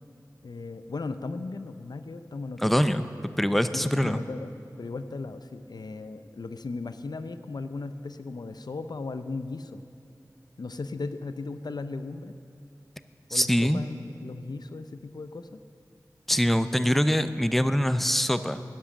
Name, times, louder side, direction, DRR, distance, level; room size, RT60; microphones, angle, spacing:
voice 1, 0.4-2.9 3.7-9.8 10.6-12.3 13.3-15.6 17.2-17.3, left 3 dB, 80° left, 11 dB, 0.5 m, -37 dB
voice 2, 2.6-3.0 3.4-4.2 13.3-13.8 16.3-18.6, equal, 5° left, 11 dB, 0.5 m, -23 dB
11.0 x 10.0 x 7.2 m, 2.6 s
wide cardioid pair, 45°, 7 cm